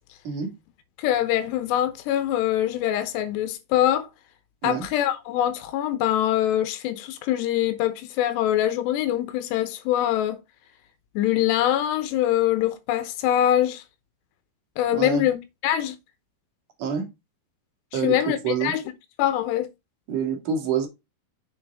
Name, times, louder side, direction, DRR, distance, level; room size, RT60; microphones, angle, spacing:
voice 1, 1.0-4.1 4.6-10.4 11.2-13.8 14.8-15.4 15.6-16.0 17.9-18.8 19.2-19.7, left 12 dB, 85° left, 3.1 m, -23 dB
voice 2, 14.9-15.3 16.8-17.0 17.9-18.7 20.1-20.9, right 6 dB, 55° right, 3.0 m, -27 dB
7.1 x 6.2 x 3.5 m
omnidirectional pair, 4.8 m